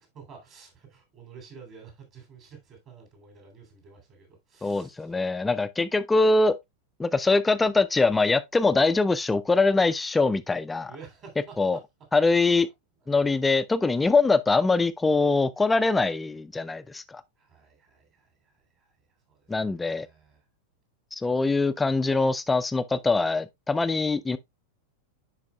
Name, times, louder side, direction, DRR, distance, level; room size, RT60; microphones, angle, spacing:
voice 1, 0.0-5.1 10.9-11.6 17.4-18.9 19.3-20.4, right 5 dB, 35° right, 3.0 m, -50 dB
voice 2, 4.6-6.6 7.0-10.9 11.6-11.8 12.1-12.7 13.1-17.2 19.5-20.1 21.1-24.4, left 3 dB, 10° left, 0.5 m, -23 dB
10.5 x 4.8 x 2.2 m
figure-of-eight pair, 90°, 0 cm